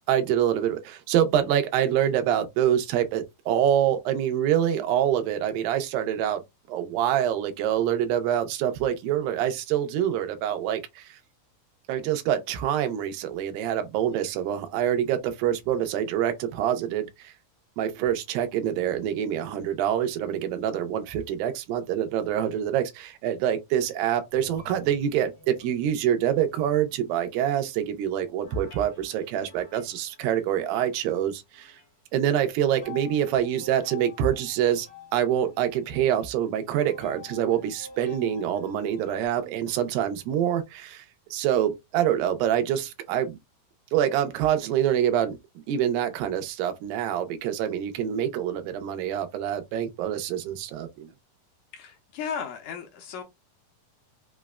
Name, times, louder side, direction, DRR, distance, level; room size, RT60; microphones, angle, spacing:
voice 1, 0.1-6.4 6.7-11.2 11.9-17.3 17.8-31.8 32.1-34.9 35.1-41.1 41.3-43.4 43.9-45.4 45.7-51.1, right 10 dB, 90° right, 2.4 m, -26 dB
sound 1, 23.9-27.8 28.4-31.0 31.5-31.9 32.6-39.3, left 4 dB, 50° left, 0.7 m, -48 dB
voice 2, 51.7-53.2, left 7 dB, 75° left, 1.9 m, -35 dB
5.6 x 2.1 x 2.3 m
omnidirectional pair, 4.0 m